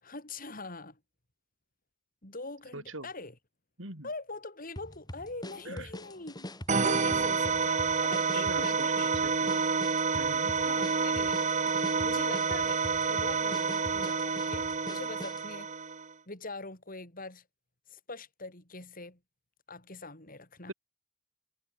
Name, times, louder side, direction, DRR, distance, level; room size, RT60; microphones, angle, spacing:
voice 1, 0.0-1.0 2.2-3.4 4.0-6.5 6.7-9.1 9.5-9.7 10.6-11.4 12.0-15.7 16.3-17.4 17.9-19.2 19.7-20.7, left 3 dB, 45° left, 6.1 m, -43 dB
voice 2, 2.7-3.1 3.8-4.1 5.7-5.9 8.3-8.6 9.2-9.5 10.1-10.5 20.7-20.8, right 2 dB, 75° right, 7.5 m, -41 dB
sound 1, 4.8-15.5, left 1 dB, 20° left, 3.9 m, -44 dB
sound 2, 6.7-16.1, right 5 dB, 35° right, 1.4 m, -29 dB
head